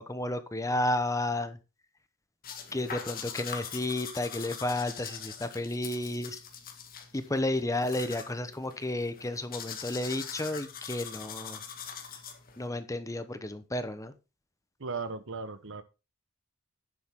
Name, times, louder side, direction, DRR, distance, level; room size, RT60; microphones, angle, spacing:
voice 1, 0.0-1.6 2.7-6.4 7.1-11.6 12.6-14.1, left 1 dB, 15° left, 11 dB, 0.9 m, -32 dB
sound 1, 2.4-12.7, left 7 dB, 40° left, 1.8 m, -43 dB
voice 2, 14.8-15.8, right 4 dB, 60° right, 12 dB, 1.1 m, -36 dB
10.0 x 7.5 x 3.6 m, 0.29 s
head